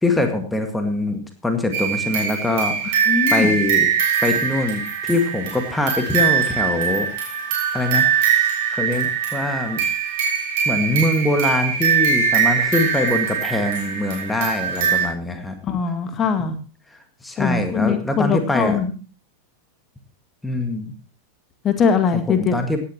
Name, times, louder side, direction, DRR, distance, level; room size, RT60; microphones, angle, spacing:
voice 1, 0.0-3.9 4.2-7.1 7.7-8.1 8.7-9.8 10.7-15.6 17.2-18.8 20.4-20.9 22.1-22.8, left 2 dB, 5° left, 5 dB, 1.9 m, -23 dB
sound 1, 1.7-15.1, right 7 dB, 50° right, 6.4 m, -22 dB
voice 2, 3.1-3.6 15.7-16.6 17.4-18.9 21.6-22.5, left 6 dB, 25° left, 7 dB, 2.0 m, -21 dB
17.0 x 10.5 x 3.0 m, 0.36 s
figure-of-eight pair, 90°, 0 cm